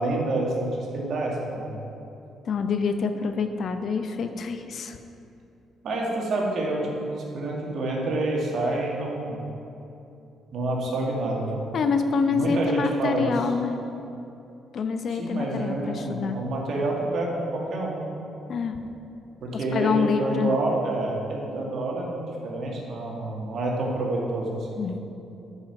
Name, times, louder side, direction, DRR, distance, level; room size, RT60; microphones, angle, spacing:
voice 1, 0.0-1.7 5.8-9.4 10.5-11.6 12.3-13.3 15.1-18.0 19.4-24.4 24.7-24.8, right 2 dB, 60° right, -2 dB, 1.9 m, -28 dB
voice 2, 2.4-5.0 11.7-13.8 14.7-16.4 18.5-18.8 19.5-20.6 24.8-25.0, left 5 dB, 55° left, 7 dB, 0.6 m, -26 dB
8.9 x 5.6 x 5.8 m, 2.8 s
cardioid pair, 90°, 0 cm